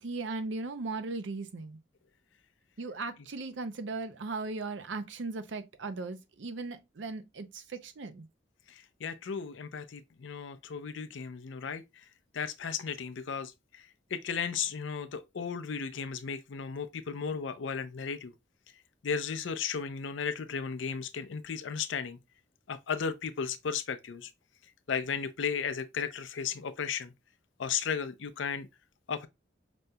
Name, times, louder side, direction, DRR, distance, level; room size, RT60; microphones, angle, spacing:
voice 1, 0.0-1.8 2.8-8.3, right 3 dB, 75° right, 0.5 m, -37 dB
voice 2, 8.7-11.8 12.3-18.3 19.0-22.2 22.7-24.3 24.9-27.1 27.6-28.7 29.1-29.3, left 6 dB, 80° left, 0.5 m, -35 dB
5.1 x 2.7 x 2.2 m
head